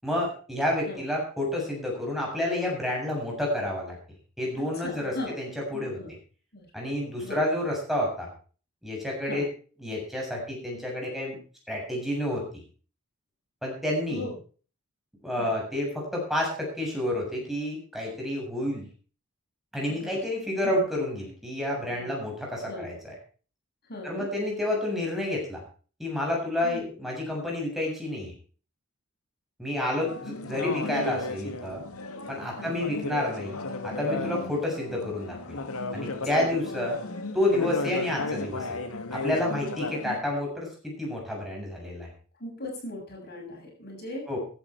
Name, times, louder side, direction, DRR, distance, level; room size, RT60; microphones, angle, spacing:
voice 1, 0.0-4.0 4.4-6.0 6.7-8.3 8.8-9.5 9.8-11.4 11.7-12.4 13.6-14.3 15.2-18.9 19.7-23.2 24.0-25.6 26.0-28.3 29.6-31.8 32.3-33.6 33.8-35.6 35.9-37.0 37.3-38.8 39.1-42.1 44.3-44.4, left 1 dB, ahead, -2 dB, 7.2 m, -29 dB
voice 2, 4.6-5.3 5.7-6.1 6.5-6.7 7.0-7.4 9.2-9.4 14.1-14.4 15.4-15.5 19.9-20.2 20.6-20.8 21.8-22.1 22.7-22.9 23.9-24.3 26.6-26.9 32.6-32.7 36.1-36.2 42.4-44.3, left 1 dB, 50° left, 0 dB, 7.0 m, -38 dB
sound 1, 30.1-40.2, left 2 dB, 80° left, 2.0 m, -34 dB
15.5 x 11.5 x 4.6 m, 0.39 s
head